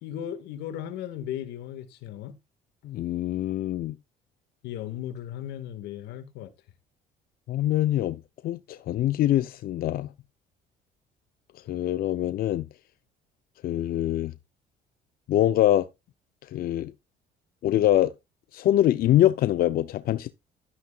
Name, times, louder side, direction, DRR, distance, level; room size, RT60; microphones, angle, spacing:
voice 1, 0.0-2.3 4.6-6.5, left 11 dB, 90° left, 1.8 m, -36 dB
voice 2, 2.8-4.0 7.5-10.1 11.7-12.6 13.6-14.3 15.3-15.9 16.5-16.9 17.6-18.1 18.5-20.3, left 13 dB, 60° left, 0.6 m, -24 dB
12.0 x 9.6 x 2.4 m
cardioid pair, 110°, 17 cm